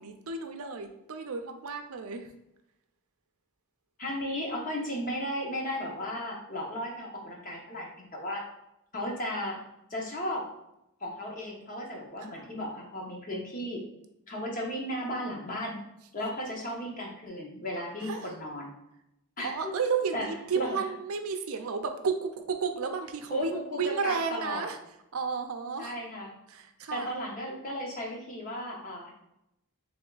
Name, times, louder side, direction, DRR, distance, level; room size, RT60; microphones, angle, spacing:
voice 1, 0.0-2.3 12.2-12.5 18.0-18.3 19.4-24.8 25.1-26.0 26.5-27.1, right 5 dB, 70° right, 6 dB, 0.5 m, -32 dB
voice 2, 4.0-8.4 8.9-9.6 9.9-10.5 11.0-13.8 14.3-15.8 16.1-18.7 19.4-19.5 20.1-20.3 20.5-20.8 23.3-24.7 25.8-26.4 26.9-29.1, equal, 40° left, -1 dB, 1.0 m, -35 dB
3.6 x 3.4 x 3.8 m, 0.84 s
head